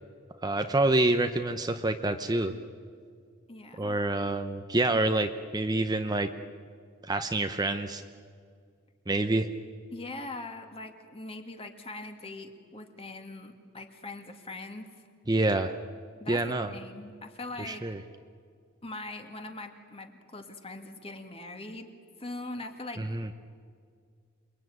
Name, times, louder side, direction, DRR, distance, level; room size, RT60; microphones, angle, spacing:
voice 1, 0.4-2.5 3.8-6.3 7.1-8.0 9.1-9.5 15.3-15.7 16.3-16.7 17.7-18.0 23.0-23.3, right 2 dB, 20° right, 7 dB, 0.8 m, -27 dB
voice 2, 3.5-4.0 9.9-14.9 16.2-17.9 18.8-21.9 22.2-23.3, left 2 dB, 25° left, 5 dB, 2.2 m, -42 dB
28.5 x 21.5 x 9.4 m, 2.2 s
head